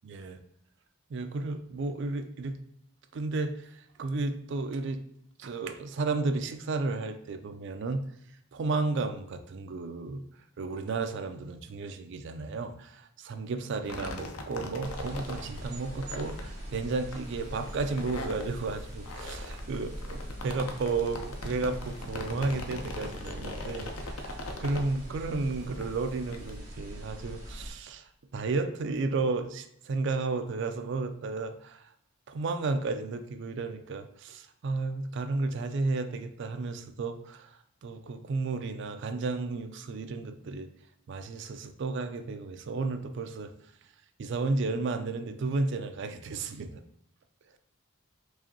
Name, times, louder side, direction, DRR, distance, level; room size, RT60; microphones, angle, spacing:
voice 1, 0.0-0.4 1.1-2.6 3.1-5.0 5.4-8.1 8.5-10.2 10.6-31.8 32.3-40.7 41.1-43.5 44.2-46.8, right 3 dB, 55° right, 8 dB, 0.3 m, -33 dB
sound 1, 13.8-26.6, left 2 dB, 85° left, 0.5 m, -41 dB
sound 2, 14.8-27.7, equal, 35° right, 1.2 m, -42 dB
4.7 x 2.6 x 2.8 m, 0.77 s
head